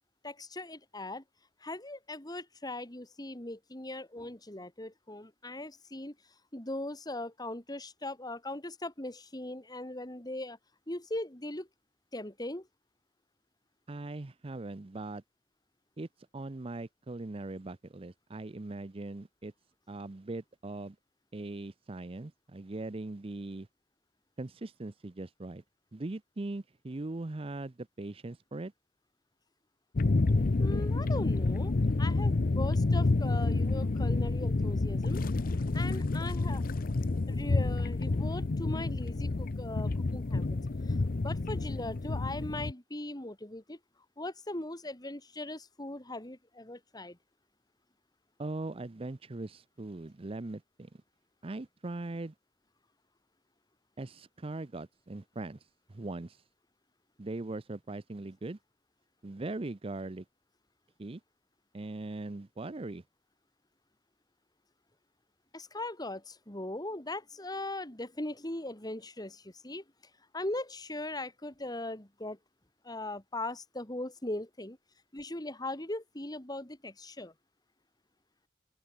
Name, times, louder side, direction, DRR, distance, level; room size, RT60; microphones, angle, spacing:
voice 1, 0.2-1.2 1.6-6.1 6.5-10.6 10.9-11.7 12.1-12.7 30.6-31.7 32.0-35.2 35.7-36.6 37.3-40.6 40.9-43.8 44.2-47.2 65.5-69.8 70.3-72.4 72.8-74.8 75.1-77.3, left 1 dB, 25° left, 3.1 m, -39 dB
voice 2, 13.9-15.2 16.0-16.1 16.3-19.5 19.9-21.0 21.3-23.7 24.4-25.6 25.9-28.7 48.4-51.0 51.4-52.3 54.0-55.6 55.9-56.4 57.2-58.6 59.2-60.2 61.0-61.2 61.7-63.0, right 2 dB, 30° right, 0.6 m, -40 dB
sound 1, 30.0-42.7, left 3 dB, 50° left, 0.6 m, -29 dB
open air
head